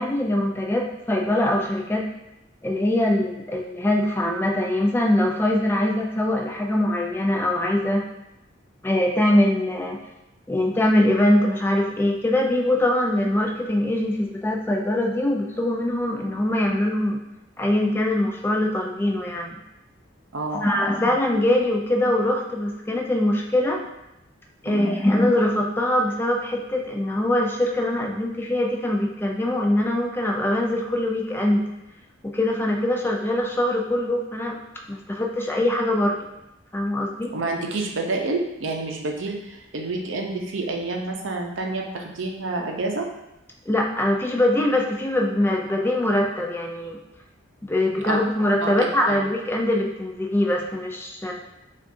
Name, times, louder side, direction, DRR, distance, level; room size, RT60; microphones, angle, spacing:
voice 1, 0.0-2.0 2.6-8.1 8.8-10.0 10.5-17.2 17.6-19.6 20.5-23.8 24.6-31.6 32.3-34.5 34.9-36.2 36.7-37.3 43.7-47.0 47.6-51.3, left 1 dB, 10° left, 0 dB, 0.4 m, -22 dB
voice 2, 20.3-20.7 24.7-24.9 37.3-43.1 48.0-48.2 48.6-49.2, right 2 dB, 75° right, 2 dB, 0.6 m, -28 dB
6.3 x 2.5 x 2.6 m, 0.90 s
head